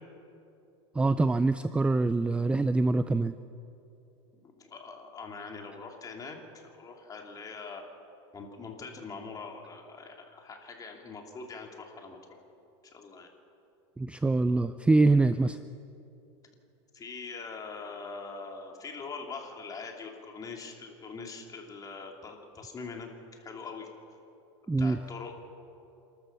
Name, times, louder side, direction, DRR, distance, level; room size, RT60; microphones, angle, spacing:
voice 1, 0.9-3.3 14.0-15.6 24.7-25.0, right 3 dB, 10° right, 12 dB, 0.4 m, -24 dB
voice 2, 4.4-7.8 8.3-12.2 12.9-13.3 16.9-23.9 24.8-25.3, left 4 dB, 25° left, 2 dB, 3.0 m, -43 dB
28.0 x 13.5 x 6.9 m, 2.8 s
supercardioid pair, 120°, 15 cm